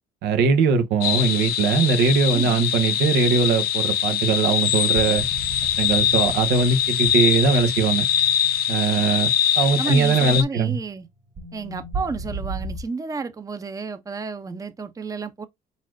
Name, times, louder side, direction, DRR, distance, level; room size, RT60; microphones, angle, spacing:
voice 1, 0.2-5.2 5.8-8.1 8.7-9.3 9.6-10.8, right 5 dB, 90° right, 1.0 m, -20 dB
sound 1, 1.0-10.4, left 11 dB, 65° left, 0.7 m, -23 dB
voice 2, 2.3-2.6 9.8-11.1 11.5-15.5, right 4 dB, 20° right, 0.6 m, -31 dB
sound 2, 4.9-12.8, right 1 dB, 50° right, 1.5 m, -36 dB
4.9 x 4.1 x 2.5 m
cardioid pair, 110°, 17 cm